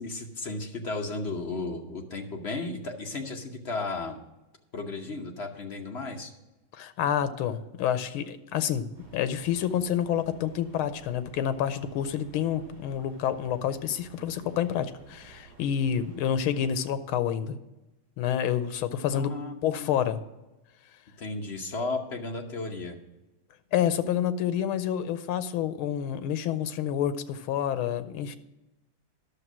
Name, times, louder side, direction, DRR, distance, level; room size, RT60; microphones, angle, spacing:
voice 1, 0.0-4.2 4.7-6.3 19.1-19.9 21.2-23.0, left 3 dB, 50° left, 2 dB, 0.8 m, -34 dB
voice 2, 6.7-8.9 9.1-17.6 18.2-19.4 19.6-20.2 23.7-28.4, left 9 dB, 85° left, 12 dB, 1.5 m, -28 dB
sound 1, 8.9-16.8, right 4 dB, 40° right, 3.6 m, -52 dB
11.0 x 6.6 x 6.1 m, 1.0 s
omnidirectional pair, 2.3 m